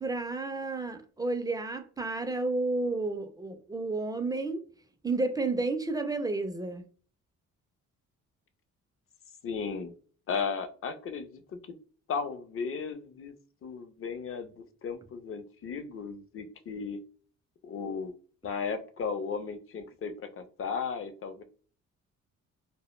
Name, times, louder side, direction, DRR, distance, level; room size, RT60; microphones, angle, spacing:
voice 1, 0.0-4.6 5.0-6.8, right 3 dB, 15° right, 0.3 m, -31 dB
voice 2, 9.4-9.9 10.3-11.8 12.1-13.3 13.6-17.0 17.6-18.1 18.4-21.4, left 5 dB, 45° left, 0.5 m, -35 dB
2.0 x 2.0 x 3.0 m
cardioid pair, 90°, 30 cm